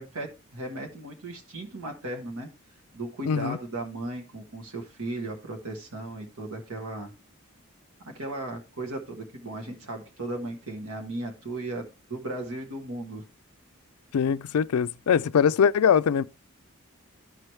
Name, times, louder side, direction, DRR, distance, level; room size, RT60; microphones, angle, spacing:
voice 1, 0.0-2.5 2.9-7.1 8.1-13.2, right 2 dB, 75° right, 1.4 m, -36 dB
voice 2, 3.2-3.6 14.1-16.3, left 7 dB, 80° left, 0.4 m, -22 dB
14.0 x 4.7 x 3.1 m
head